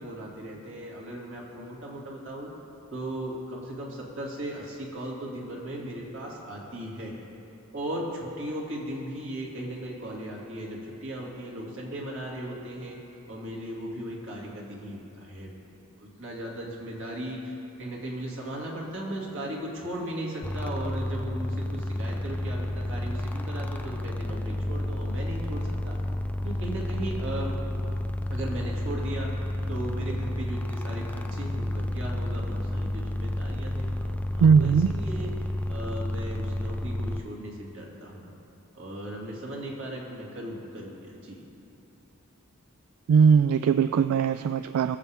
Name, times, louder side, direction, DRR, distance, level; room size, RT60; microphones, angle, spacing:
voice 1, 0.0-2.5 2.9-7.2 7.7-13.0 13.3-15.5 16.0-17.5 17.8-26.0 26.4-27.5 28.3-29.3 29.7-35.3 35.7-38.3 38.7-41.4, right 1 dB, 60° right, -3 dB, 2.3 m, -37 dB
sound 1, 20.4-37.2, left 1 dB, 5° left, 0.4 m, -31 dB
voice 2, 34.4-34.9 43.1-45.0, right 6 dB, 85° right, 11 dB, 0.3 m, -20 dB
21.0 x 7.3 x 3.5 m, 2.8 s
head